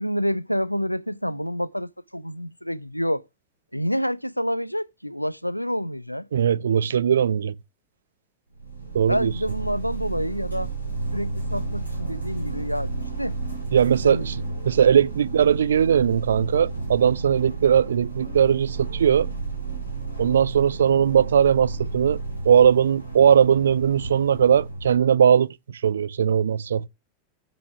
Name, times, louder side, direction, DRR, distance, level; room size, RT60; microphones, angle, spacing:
voice 1, 0.0-3.2 3.7-6.3 9.1-10.7 11.1-12.9 13.2-13.4 14.0-14.3, equal, 90° left, 0.4 m, -28 dB
voice 2, 6.3-7.5 8.9-9.3 13.7-14.4 14.6-19.3 20.2-26.9, right 8 dB, 65° right, 0.4 m, -19 dB
sound 1, 8.6-25.1, right 3 dB, 85° right, 3.1 m, -32 dB
6.9 x 6.1 x 5.7 m
figure-of-eight pair, 90°, 0 cm